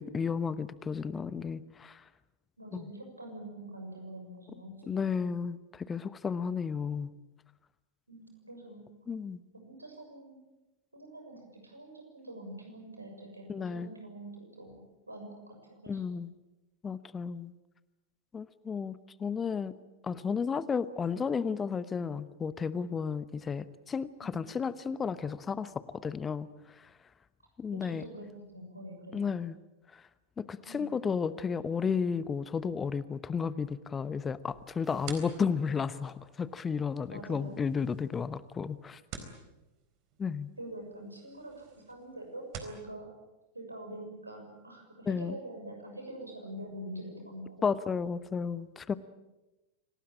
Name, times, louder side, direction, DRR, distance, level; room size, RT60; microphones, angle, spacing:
voice 1, 0.0-2.0 2.7-2.9 4.9-7.1 9.1-9.4 13.5-13.9 15.9-16.3 16.8-17.5 18.3-19.7 20.0-26.9 27.6-28.0 29.1-29.6 29.9-30.0 30.4-39.0 40.2-40.5 45.1-45.4 47.6-48.9, left 6 dB, 20° left, 16 dB, 0.9 m, -33 dB
voice 2, 2.6-5.0 8.1-8.8 9.5-10.4 10.9-14.8 15.1-16.0 24.2-24.4 27.7-28.3 28.5-29.2 30.6-30.9 37.1-37.5 40.6-43.1 43.5-47.7, right 1 dB, 85° right, 3 dB, 6.7 m, -45 dB
sound 1, 34.5-42.8, right 7 dB, 45° right, 4.0 m, -50 dB
sound 2, 34.8-37.7, right 2 dB, 20° right, 6.4 m, -62 dB
26.5 x 19.0 x 8.9 m, 1.0 s
figure-of-eight pair, 90°, 0 cm